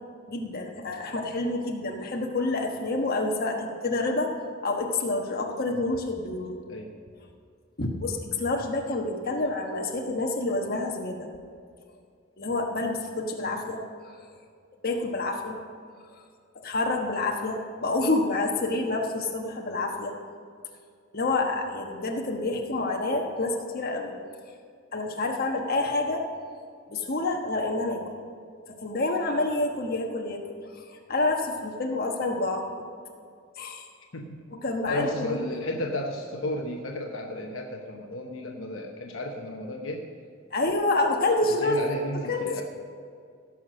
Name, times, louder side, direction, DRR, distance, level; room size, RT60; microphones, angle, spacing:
voice 1, 0.3-4.3 4.6-6.6 7.8-11.3 12.4-14.3 14.8-15.6 16.1-16.2 16.6-20.2 21.1-24.1 24.4-24.5 24.9-26.3 26.9-28.0 28.7-30.4 30.8-32.9 33.6-33.8 34.5-35.6 40.5-41.8 42.1-42.6, left 2 dB, 45° left, 1 dB, 1.2 m, -28 dB
voice 2, 34.9-40.1 41.6-42.6, left 1 dB, 70° left, 1 dB, 1.0 m, -33 dB
17.0 x 6.0 x 6.3 m, 2.2 s
head